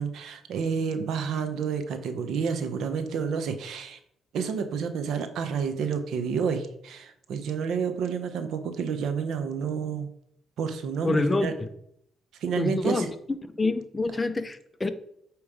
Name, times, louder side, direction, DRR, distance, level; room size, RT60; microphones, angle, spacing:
voice 1, 0.0-4.0 4.3-10.1 10.6-11.5 12.4-13.1, right 6 dB, 75° right, 9 dB, 0.8 m, -29 dB
voice 2, 11.0-11.7 12.6-13.1 13.4-14.9, left 2 dB, 20° left, 10 dB, 0.6 m, -26 dB
8.7 x 3.1 x 4.9 m, 0.72 s
cardioid pair, 90°, 0 cm